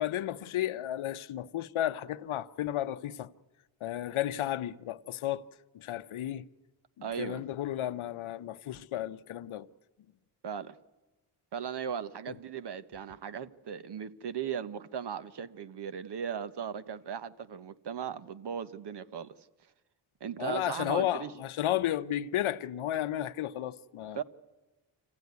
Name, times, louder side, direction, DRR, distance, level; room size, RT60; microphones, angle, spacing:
voice 1, 0.0-3.3 3.8-5.4 5.7-6.5 7.0-9.7 12.3-12.4 20.4-24.2, left 12 dB, 80° left, 0.8 m, -33 dB
voice 2, 7.0-7.4 10.4-10.8 11.5-19.3 20.2-21.3 24.1-24.2, right 7 dB, 55° right, 1.0 m, -37 dB
26.5 x 15.5 x 9.4 m
wide cardioid pair, 110°, 49 cm